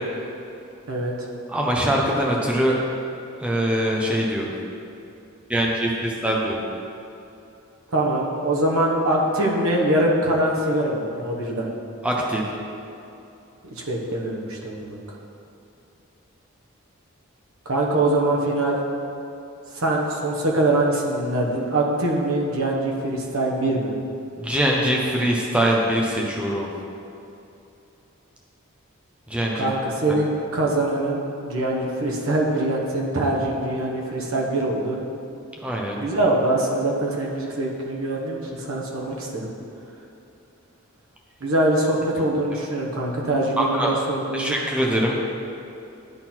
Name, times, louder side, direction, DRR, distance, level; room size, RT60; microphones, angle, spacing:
voice 1, 0.9-1.3 7.9-11.7 13.7-15.0 17.6-18.8 19.7-23.9 29.5-35.0 36.0-39.5 41.4-44.5, right 1 dB, 70° right, -2 dB, 1.2 m, -23 dB
voice 2, 1.5-2.8 3.4-4.5 5.5-6.6 12.0-12.5 24.4-26.7 29.3-29.7 30.1-30.2 35.6-36.0 42.5-42.6 43.6-43.9 44.3-45.2, right 1 dB, 5° right, -2 dB, 0.8 m, -23 dB
11.0 x 3.9 x 4.4 m, 2.8 s
head